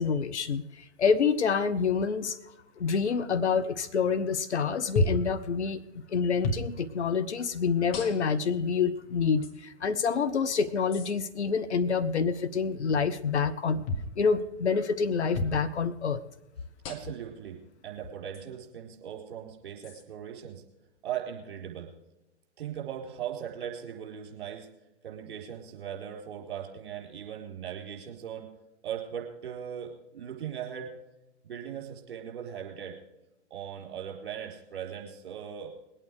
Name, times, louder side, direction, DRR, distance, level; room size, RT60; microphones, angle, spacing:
voice 1, 0.0-2.4 2.8-13.9 14.2-16.2, left 5 dB, 70° left, 10 dB, 0.8 m, -27 dB
sound 1, 5.0-5.3 6.4-6.7 7.9-8.4 9.4-9.5 10.9-11.1 13.9-14.1 15.3-15.6 16.8-17.2 18.3-18.4 19.8-20.0, left 2 dB, 30° left, 1.9 m, -31 dB
voice 2, 16.9-17.6 17.8-20.6 21.0-21.9 22.6-24.7 25.0-28.5 28.8-30.9 31.4-33.0 33.5-35.7, right 9 dB, 50° right, 0 dB, 4.4 m, -39 dB
21.0 x 8.9 x 4.8 m, 0.96 s
figure-of-eight pair, 115°, 35 cm